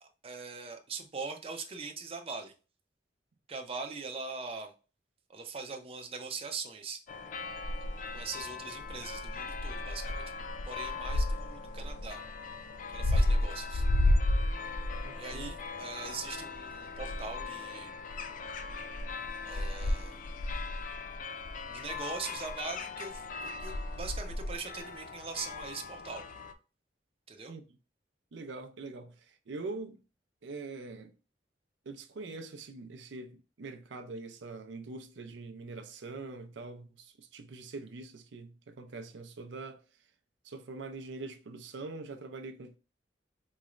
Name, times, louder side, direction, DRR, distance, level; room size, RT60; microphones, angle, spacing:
voice 1, 0.0-2.5 3.5-4.7 5.3-7.0 8.1-12.2 12.9-13.8 15.1-17.9 19.4-20.2 21.7-26.2 27.3-27.5, right 4 dB, 35° right, 0.6 m, -41 dB
sound 1, 7.1-26.5, left 2 dB, 45° left, 0.4 m, -34 dB
voice 2, 15.0-15.5 27.5-27.6 28.3-30.0 30.4-31.2 31.8-40.1 40.4-42.8, right 3 dB, 80° right, 0.5 m, -43 dB
4.0 x 3.1 x 2.4 m
head